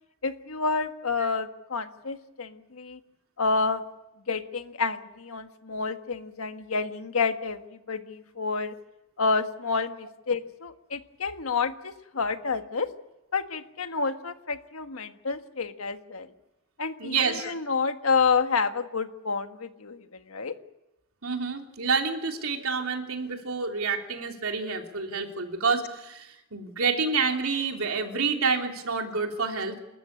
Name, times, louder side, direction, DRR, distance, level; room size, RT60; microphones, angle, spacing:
voice 1, 0.2-3.0 3.4-3.8 4.3-8.7 9.2-12.9 13.3-16.3 16.8-20.6, left 4 dB, 85° left, 8 dB, 1.5 m, -29 dB
voice 2, 17.0-17.5 21.2-29.8, right 4 dB, 85° right, 3 dB, 3.0 m, -28 dB
28.0 x 13.5 x 9.9 m, 0.92 s
head